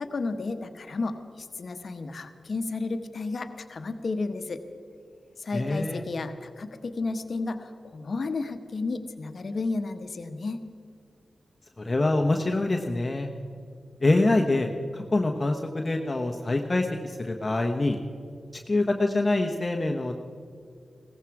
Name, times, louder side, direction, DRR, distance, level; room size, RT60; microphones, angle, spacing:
voice 1, 0.0-4.6 5.4-10.6, left 3 dB, 65° left, 8 dB, 1.1 m, -32 dB
voice 2, 5.5-6.0 11.8-13.3 14.0-18.0 18.7-20.1, left 2 dB, 35° left, 3 dB, 1.1 m, -25 dB
17.0 x 14.5 x 4.8 m, 2.4 s
cardioid pair, 40°, 0 cm